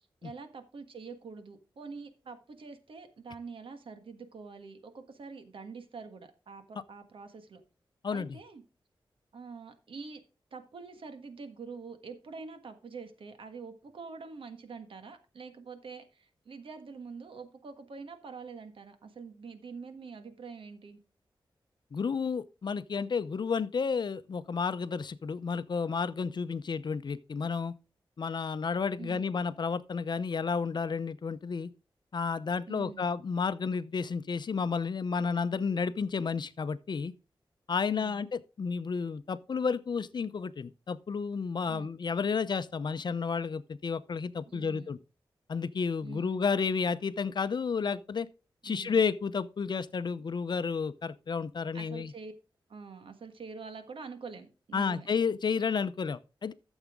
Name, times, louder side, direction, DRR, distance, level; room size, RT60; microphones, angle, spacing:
voice 1, 0.2-7.6 8.1-8.6 9.3-10.2 10.5-21.0 29.0-29.3 32.7-33.1 37.9-38.2 41.7-41.9 44.5-45.0 46.0-46.4 48.6-49.0 51.7-52.3 52.7-55.1, right 4 dB, 80° right, 1.5 m, -45 dB
voice 2, 8.0-8.4 21.9-27.7 28.2-31.7 32.1-37.1 37.7-45.0 45.5-48.3 48.6-52.1 54.7-56.5, left 5 dB, 60° left, 0.6 m, -31 dB
13.0 x 7.2 x 3.6 m
wide cardioid pair, 100°, 9 cm